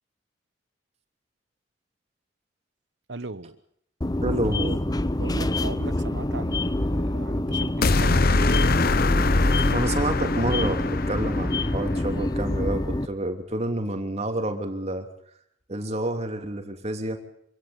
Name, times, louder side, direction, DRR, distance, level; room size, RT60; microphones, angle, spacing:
voice 1, 3.1-3.6 5.2-8.3, right 2 dB, 65° right, 16 dB, 1.1 m, -37 dB
sound 1, 4.0-13.1, left 1 dB, 20° left, 0.8 m, -26 dB
voice 2, 4.2-4.8 9.7-15.1 15.7-17.2, right 1 dB, 35° right, 6 dB, 3.1 m, -29 dB
sound 2, 7.8-12.1, left 3 dB, 55° left, 0.9 m, -23 dB
26.0 x 17.0 x 7.2 m, 0.71 s
head